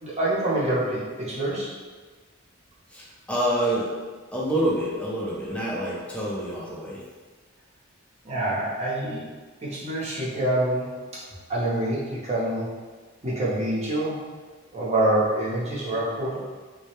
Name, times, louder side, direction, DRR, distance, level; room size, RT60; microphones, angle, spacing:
voice 1, 0.0-1.7 8.2-9.2 9.6-10.9 11.5-12.7 13.2-14.2 14.7-16.4, right 1 dB, 35° right, -7 dB, 0.7 m, -26 dB
voice 2, 2.9-3.9 4.3-7.0, right 1 dB, 5° left, -6 dB, 0.4 m, -27 dB
2.2 x 2.0 x 2.9 m, 1.4 s
head